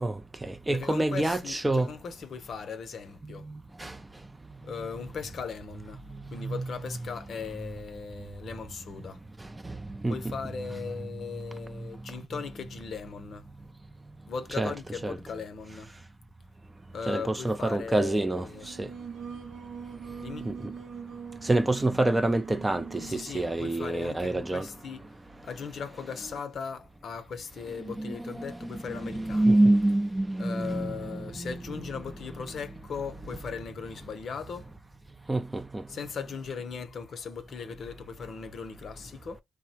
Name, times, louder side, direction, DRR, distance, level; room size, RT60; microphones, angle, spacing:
voice 1, 0.0-1.9 3.5-4.0 6.3-6.7 9.6-9.8 10.0-10.3 14.6-14.7 15.0-15.2 17.1-18.9 20.4-20.7 21.4-24.7 27.9-31.5 35.3-35.8, right 2 dB, 15° right, 0.3 m, -27 dB
voice 2, 0.7-3.5 4.6-6.0 6.3-9.2 10.1-13.5 14.3-15.9 16.9-18.7 20.2-20.6 23.0-25.1 25.4-29.6 30.4-34.7 35.9-39.4, left 6 dB, 55° left, 0.6 m, -38 dB
Singing, 18.5-23.4, right 7 dB, 85° right, 0.7 m, -42 dB
3.4 x 2.0 x 2.8 m
cardioid pair, 90°, 0 cm